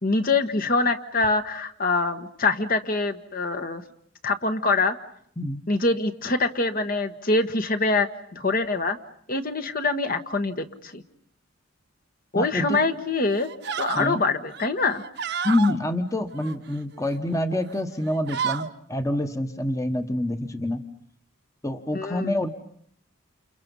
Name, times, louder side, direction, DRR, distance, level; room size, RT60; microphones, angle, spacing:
voice 1, 0.0-3.8 4.2-4.9 5.7-9.0 9.3-11.0 12.3-13.5 13.7-15.0 21.9-22.3, left 3 dB, 45° left, 7 dB, 1.4 m, -24 dB
voice 2, 12.3-12.8 13.9-14.2 15.4-20.8 21.6-22.5, left 1 dB, 15° left, 7 dB, 1.2 m, -26 dB
sound 1, 12.6-12.9 13.3-14.1 14.5-15.8 16.3-17.2 17.6-17.8 18.1-18.7, right 7 dB, 55° right, 1.0 m, -32 dB
29.0 x 29.0 x 5.5 m, 0.65 s
head